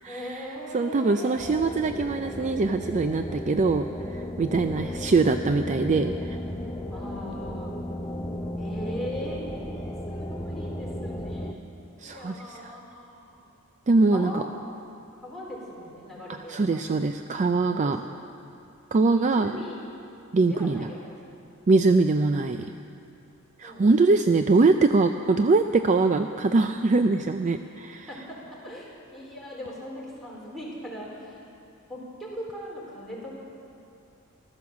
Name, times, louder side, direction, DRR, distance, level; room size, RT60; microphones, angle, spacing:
voice 1, 0.1-1.8 4.6-5.0 6.9-7.8 8.6-11.7 12.0-13.4 14.1-14.5 15.1-16.8 17.7-18.1 19.1-19.8 20.4-21.3 23.6-23.9 28.1-31.4 31.9-33.3, equal, ahead, -6 dB, 3.9 m, -40 dB
voice 2, 0.7-6.4 12.0-12.7 13.9-14.4 16.5-18.0 18.9-19.6 20.3-20.9 21.7-22.7 23.6-28.1, right 3 dB, 35° right, 8 dB, 0.4 m, -23 dB
sound 1, 1.4-11.5, left 1 dB, 15° left, 0.6 m, -34 dB
15.0 x 13.0 x 7.2 m, 2.6 s
head